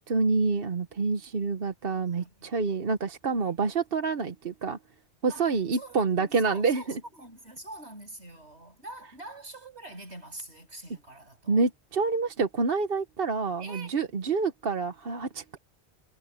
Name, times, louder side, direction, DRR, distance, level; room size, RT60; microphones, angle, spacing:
voice 1, 0.1-4.8 5.2-6.8 11.5-15.6, right 4 dB, 55° right, 1.2 m, -27 dB
voice 2, 2.0-2.5 3.4-3.6 5.3-11.6 13.6-14.0, right 2 dB, 75° right, 7.8 m, -45 dB
omnidirectional pair, 1.1 m